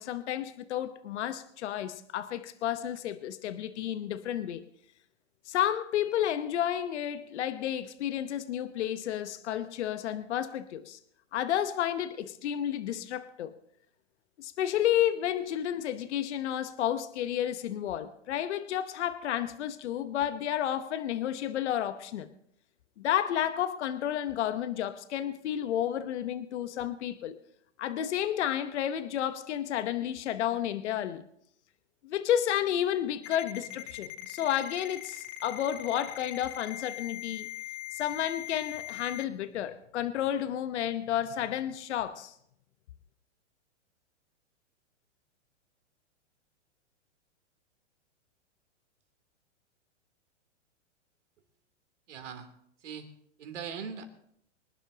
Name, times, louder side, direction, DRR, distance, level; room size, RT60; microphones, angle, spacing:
voice 1, 0.0-4.6 5.5-11.0 11.3-13.5 14.4-22.3 23.0-27.4 27.8-31.2 32.0-37.5 37.9-42.3, left 11 dB, 65° left, 1.0 m, -31 dB
Ringtone, 33.2-39.2, left 13 dB, 35° left, 1.0 m, -41 dB
voice 2, 52.1-52.5 52.8-53.1 53.4-54.0, right 6 dB, 75° right, 3.1 m, -40 dB
24.5 x 11.5 x 2.9 m
hypercardioid pair, 130°, 36 cm